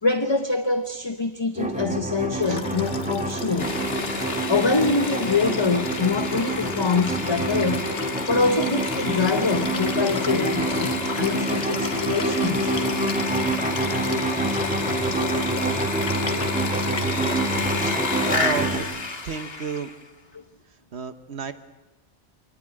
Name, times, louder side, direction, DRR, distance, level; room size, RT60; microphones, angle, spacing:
voice 1, 0.0-3.8 4.5-7.9 8.3-10.9 11.2-12.8 20.3-20.4, left 4 dB, 25° left, 8 dB, 0.8 m, -25 dB
sound 1, 1.6-18.8, right 2 dB, 5° right, 2.3 m, -27 dB
Liquid, 2.4-18.5 19.8-19.9, left 4 dB, 85° left, 1.7 m, -35 dB
Sawing, 3.6-20.0, left 3 dB, 60° left, 1.9 m, -32 dB
voice 2, 17.7-18.9 19.2-19.9 20.9-21.5, right 6 dB, 70° right, 11 dB, 1.3 m, -31 dB
25.5 x 19.0 x 8.9 m, 1.1 s
omnidirectional pair, 1.2 m